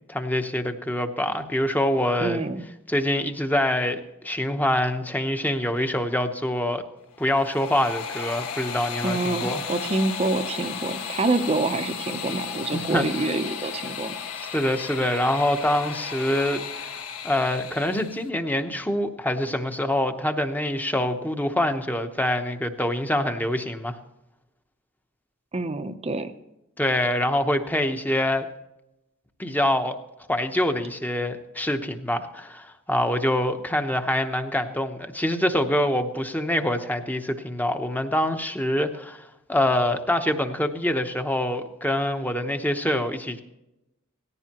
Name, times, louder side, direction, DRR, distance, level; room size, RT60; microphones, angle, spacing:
voice 1, 0.1-2.4 2.9-6.8 7.2-9.6 12.7-13.1 14.5-17.0 17.2-24.0 26.8-28.5 29.4-30.0 30.3-39.2 39.5-43.4, left 1 dB, 10° left, 7 dB, 0.9 m, -25 dB
voice 2, 2.2-2.6 9.0-14.2 25.5-26.3, right 2 dB, 30° right, 9 dB, 0.7 m, -27 dB
sound 1, 7.1-18.3, left 6 dB, 85° left, 1.2 m, -34 dB
18.0 x 15.0 x 3.0 m, 0.91 s
head